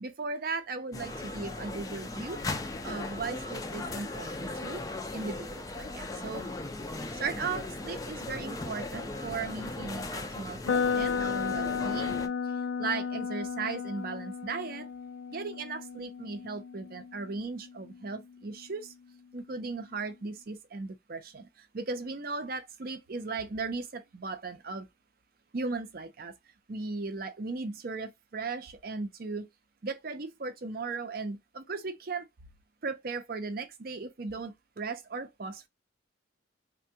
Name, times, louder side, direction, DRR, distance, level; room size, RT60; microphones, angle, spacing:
voice 1, 0.0-2.4 2.8-4.8 5.1-6.5 7.1-12.3 12.8-14.9 15.3-18.9 19.3-21.5 21.7-24.9 25.5-26.3 26.7-29.5 29.8-32.2 32.8-35.7, right 4 dB, 50° right, 0.5 m, -37 dB
sound 1, 0.9-12.3, left 2 dB, 20° left, 0.3 m, -38 dB
sound 2, 10.7-18.6, left 6 dB, 90° left, 0.4 m, -34 dB
3.3 x 2.2 x 2.7 m
head